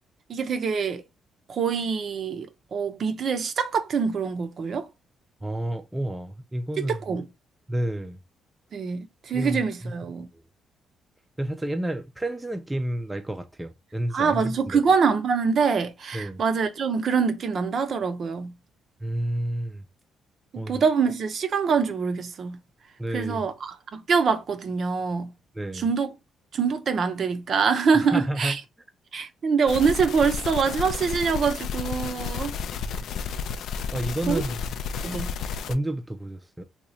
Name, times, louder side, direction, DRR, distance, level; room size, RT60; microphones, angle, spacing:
voice 1, 0.3-1.0 1.5-4.9 6.9-7.3 8.7-10.3 14.1-18.5 20.5-22.6 23.1-25.3 25.7-26.1 26.5-28.6 29.1-32.6 34.3-34.4 35.0-35.3, right 5 dB, 55° right, 0.6 m, -25 dB
voice 2, 5.4-7.0 7.7-8.2 9.3-9.9 10.3-10.4 11.4-14.8 16.1-16.4 19.0-19.9 20.6-20.8 23.0-23.5 25.5-25.9 28.0-28.6 32.8-33.1 33.9-34.8 35.7-36.6, right 1 dB, 10° right, 0.4 m, -30 dB
sound 1, 29.7-35.7, left 6 dB, 75° left, 0.4 m, -32 dB
2.9 x 2.3 x 4.1 m
cardioid pair, 90°, 0 cm